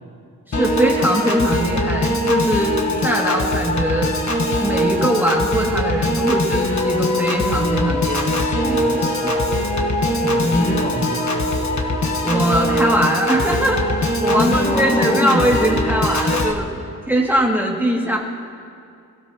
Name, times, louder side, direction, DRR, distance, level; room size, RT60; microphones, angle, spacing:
Piano / Organ, 0.5-16.5, left 1 dB, 50° left, 1.4 m, -21 dB
voice 1, 0.5-4.1 4.6-9.4 12.2-16.7 17.1-18.2, right 1 dB, 5° right, -2 dB, 2.3 m, -21 dB
voice 2, 10.1-11.6 14.3-15.6, equal, 25° left, -3 dB, 1.7 m, -24 dB
29.0 x 16.5 x 3.0 m, 2.4 s
wide cardioid pair, 125°, 37 cm